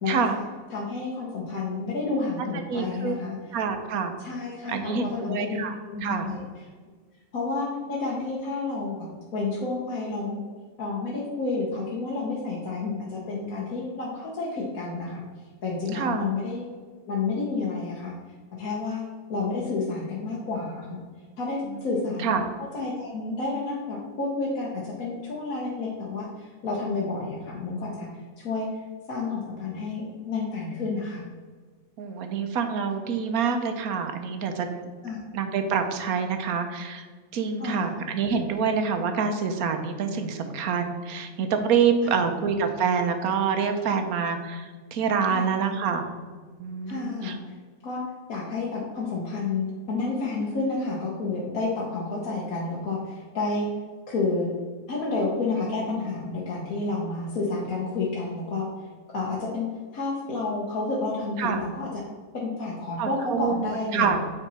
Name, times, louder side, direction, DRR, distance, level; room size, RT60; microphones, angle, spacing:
voice 1, 0.0-0.4 0.7-3.4 4.2-5.6 5.9-6.4 7.3-9.0 9.3-10.4 10.8-15.2 15.6-16.6 17.1-18.1 18.6-19.0 19.3-21.0 21.4-22.2 22.7-28.1 28.4-28.7 29.1-31.2 35.0-35.3 37.6-37.9 42.0-42.3 45.3-45.7 46.9-47.4 47.8-48.0 48.3-53.7 54.1-54.5 54.9-58.7 59.1-59.7 59.9-62.0 62.3-64.2, left 3 dB, 65° left, -5 dB, 1.6 m, -30 dB
voice 2, 2.7-3.1 3.5-4.2 4.7-5.7 6.0-6.3 15.9-16.2 22.2-22.4 32.0-34.9 35.3-37.1 37.3-46.0 46.6-47.4 61.4-61.6 63.0-64.2, right 6 dB, 75° right, 6 dB, 1.2 m, -26 dB
9.0 x 4.1 x 4.2 m, 1.5 s
omnidirectional pair, 1.6 m